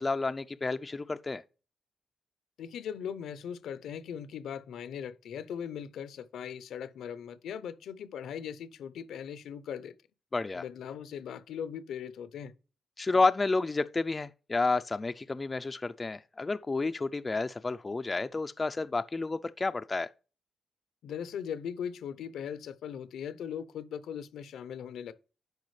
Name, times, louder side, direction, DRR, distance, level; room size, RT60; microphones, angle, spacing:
voice 1, 0.0-1.4 10.3-10.6 13.0-20.1, left 3 dB, 30° left, 0.4 m, -30 dB
voice 2, 2.6-9.9 10.5-12.5 21.0-25.1, left 8 dB, 85° left, 0.6 m, -39 dB
10.5 x 4.8 x 3.2 m
cardioid pair, 75°, 0 cm